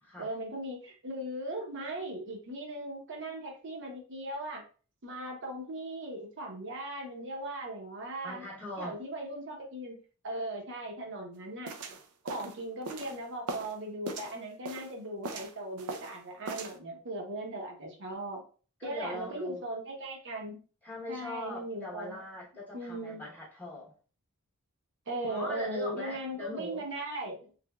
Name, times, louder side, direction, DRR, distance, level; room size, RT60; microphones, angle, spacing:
voice 1, 0.2-4.6 5.0-8.5 8.8-10.0 10.2-11.7 12.2-18.4 18.8-20.6 21.1-22.2 22.7-23.2 25.1-27.5, right 1 dB, 55° right, 1 dB, 0.9 m, -38 dB
voice 2, 8.2-9.0 18.8-19.7 20.8-23.9 25.3-26.8, left 1 dB, 5° left, -5 dB, 0.9 m, -41 dB
sound 1, 11.7-13.7 14.1-14.9 15.2-16.2 16.5-16.8, right 3 dB, 75° right, 0.5 m, -39 dB
3.4 x 3.2 x 2.3 m, 0.39 s
head